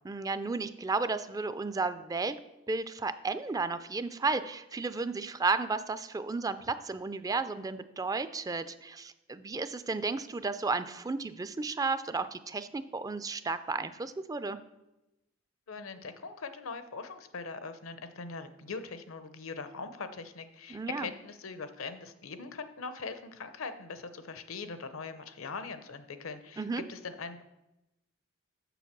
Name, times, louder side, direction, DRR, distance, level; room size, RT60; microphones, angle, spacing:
voice 1, 0.1-2.4 2.7-14.6 20.7-21.1 26.6-26.8, right 3 dB, 15° right, 12 dB, 0.3 m, -33 dB
voice 2, 15.7-27.4, left 4 dB, 75° left, 10 dB, 0.7 m, -41 dB
7.0 x 6.5 x 5.9 m, 0.95 s
head